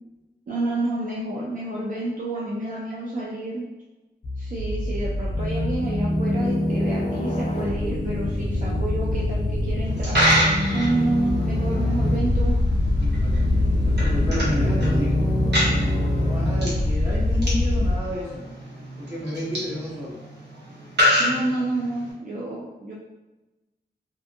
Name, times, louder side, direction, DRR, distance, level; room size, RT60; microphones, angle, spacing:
voice 1, 0.5-3.7 4.4-10.2 10.7-12.6 21.2-22.9, right 2 dB, 45° right, -5 dB, 0.4 m, -29 dB
sound 1, 4.2-18.0, left 1 dB, 35° left, 0.5 m, -23 dB
Coin (dropping), 9.8-22.1, equal, 70° right, 0.9 m, -28 dB
voice 2, 13.0-15.2 16.1-18.5 19.0-20.2, equal, 15° right, -6 dB, 0.8 m, -31 dB
2.6 x 2.5 x 2.5 m, 1.1 s
wide cardioid pair, 170°, 18 cm